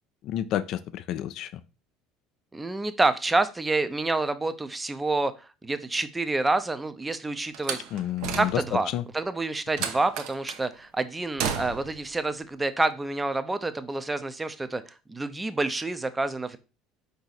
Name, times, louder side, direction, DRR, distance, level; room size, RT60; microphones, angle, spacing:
voice 1, 0.2-1.5 7.9-8.6 8.9-9.0, left 12 dB, 55° left, 14 dB, 0.4 m, -30 dB
voice 2, 2.5-7.8 8.4-14.8 15.1-16.6, right 2 dB, 15° right, 11 dB, 0.5 m, -28 dB
Slam, 7.5-8.9 9.8-10.7 11.4-12.0, right 7 dB, 65° right, 0.6 m, -33 dB
4.7 x 2.7 x 4.0 m, 0.32 s
hypercardioid pair, 70°, 0 cm